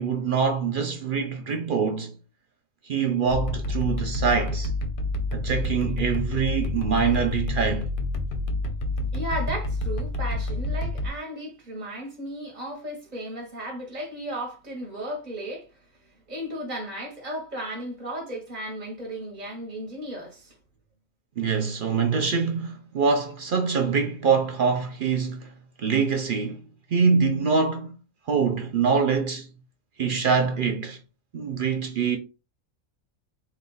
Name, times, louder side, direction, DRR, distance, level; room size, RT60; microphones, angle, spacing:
voice 1, 0.0-2.2 2.8-4.7 5.3-7.9 21.4-25.5 25.8-26.6 26.9-28.0 28.3-29.5 30.0-31.0 31.3-32.2, right 5 dB, 60° right, 0.5 m, -24 dB
sound 1, 3.3-11.1, left 2 dB, 50° left, 0.7 m, -28 dB
voice 2, 9.1-15.7 16.3-20.6, right 1 dB, 35° right, 1.2 m, -35 dB
3.7 x 2.4 x 3.8 m
omnidirectional pair, 1.4 m